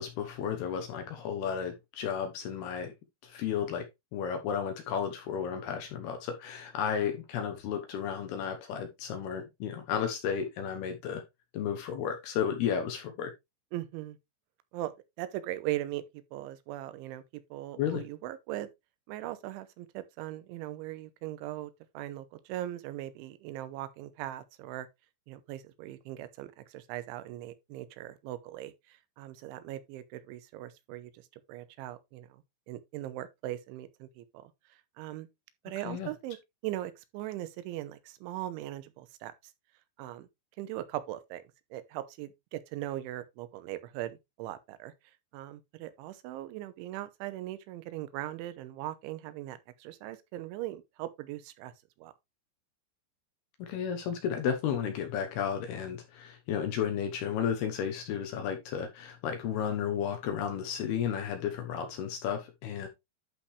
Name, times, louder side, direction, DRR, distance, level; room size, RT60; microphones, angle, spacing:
voice 1, 0.0-2.9 3.2-3.9 4.1-11.2 11.5-13.3 17.8-18.0 35.8-36.1 53.6-62.9, left 8 dB, 75° left, 2.5 m, -33 dB
voice 2, 13.7-14.2 14.7-14.9 15.2-16.0 16.3-17.2 17.5-18.7 19.1-24.9 25.3-31.2 31.5-34.5 35.0-35.3 35.6-36.4 36.6-39.3 40.0-40.3 40.6-41.4 41.7-44.9 45.3-51.7 52.0-52.1, right 14 dB, 80° right, 3.2 m, -39 dB
11.5 x 5.1 x 3.2 m
omnidirectional pair, 5.6 m